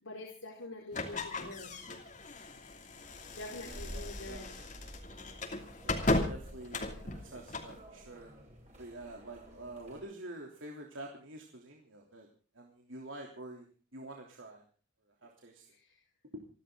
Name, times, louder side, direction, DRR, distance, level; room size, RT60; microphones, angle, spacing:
voice 1, 0.0-1.8 3.3-4.5 15.7-15.9, left 2 dB, 90° left, -2 dB, 4.3 m, -45 dB
sound 1, 0.9-7.8, left 2 dB, 35° left, 2.8 m, -37 dB
sound 2, 2.9-10.0, equal, 35° right, 6.8 m, -51 dB
voice 2, 3.7-4.6 5.8-8.3 8.8-12.3 12.5-13.7 13.9-14.6 15.2-15.7 16.3-16.4, right 1 dB, 75° right, 1 dB, 3.3 m, -47 dB
28.5 x 11.5 x 3.9 m, 0.38 s
head